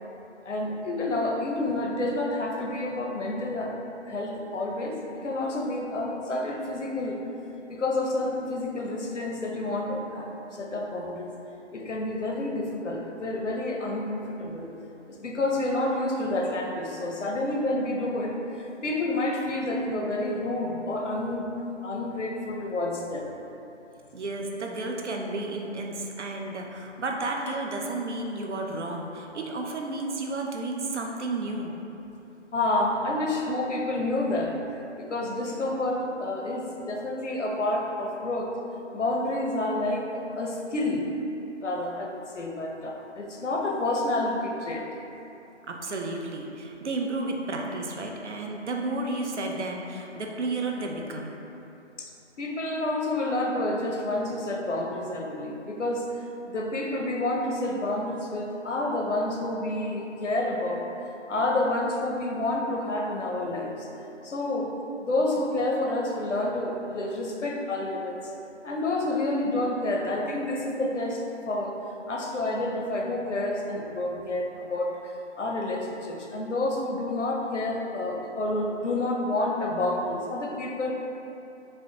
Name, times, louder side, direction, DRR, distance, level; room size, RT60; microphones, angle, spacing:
voice 1, 0.4-3.8 4.1-7.2 7.7-11.4 11.7-14.7 15.1-21.5 21.8-23.3 32.5-34.6 35.0-38.5 38.9-41.1 41.6-44.9 52.0-52.1 52.4-56.1 56.4-60.8 61.3-63.9 64.2-64.7 65.0-68.2 68.6-71.7 72.1-80.9, left 2 dB, 80° left, 0 dB, 0.7 m, -29 dB
voice 2, 24.1-31.8 45.7-51.4, right 2 dB, 70° right, 1 dB, 0.6 m, -32 dB
5.4 x 2.2 x 2.7 m, 2.9 s
figure-of-eight pair, 170°, 36 cm